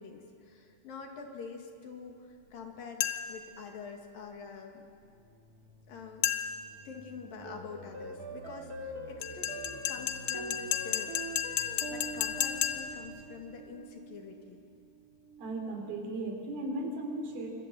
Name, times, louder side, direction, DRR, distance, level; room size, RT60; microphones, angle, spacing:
voice 1, 0.0-4.9 5.9-6.3 6.8-11.2 11.9-14.6, left 5 dB, 60° left, 2 dB, 3.6 m, -46 dB
sound 1, 3.0-3.5 6.2-6.7 9.2-13.1, left 12 dB, 90° left, 3.2 m, -33 dB
sound 2, 4.8-13.5, right 2 dB, 45° right, 3.7 m, -54 dB
sound 3, 7.4-16.1, right 2 dB, 30° right, 1.9 m, -45 dB
voice 2, 15.4-17.5, right 2 dB, 65° right, 2 dB, 5.4 m, -36 dB
26.5 x 25.0 x 7.7 m, 2.4 s
omnidirectional pair, 4.7 m